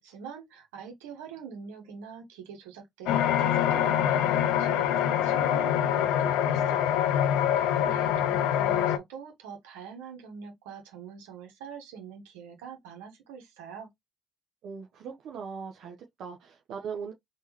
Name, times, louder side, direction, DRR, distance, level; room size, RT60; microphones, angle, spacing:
voice 1, 0.0-6.9 7.6-13.9, right 6 dB, 85° right, 1.4 m, -44 dB
sound 1, 3.1-9.0, left 10 dB, 75° left, 0.5 m, -25 dB
voice 2, 14.6-17.1, right 6 dB, 65° right, 0.7 m, -39 dB
3.6 x 2.8 x 2.9 m
hypercardioid pair, 55°, 0 cm